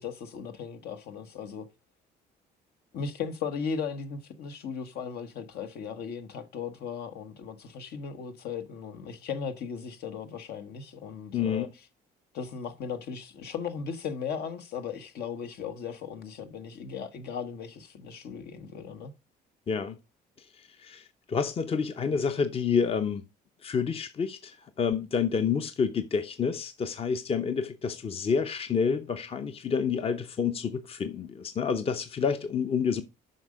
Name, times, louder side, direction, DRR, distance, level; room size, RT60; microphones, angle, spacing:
voice 1, 0.0-1.7 2.9-11.7 12.3-19.1, left 6 dB, 70° left, 1.4 m, -37 dB
voice 2, 11.3-11.7 19.7-20.0 20.6-23.2 23.6-33.0, left 6 dB, 35° left, 0.7 m, -29 dB
7.9 x 5.5 x 5.0 m
cardioid pair, 110°, 17 cm